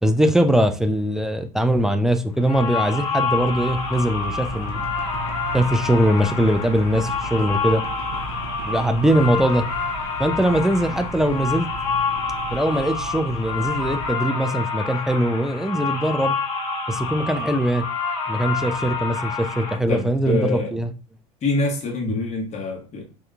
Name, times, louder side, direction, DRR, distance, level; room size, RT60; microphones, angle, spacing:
voice 1, 0.0-4.8 5.5-7.8 8.6-9.7 10.2-11.7 12.5-16.4 16.9-17.9 18.3-20.9, right 1 dB, ahead, 0.4 m, -21 dB
sound 1, 2.4-19.8, left 5 dB, 65° left, 1.3 m, -28 dB
sound 2, 3.0-14.1, right 1 dB, 85° right, 0.6 m, -35 dB
voice 2, 19.9-20.7 21.4-23.0, left 2 dB, 35° left, 1.2 m, -25 dB
3.6 x 2.8 x 2.2 m
hypercardioid pair, 80°, 19 cm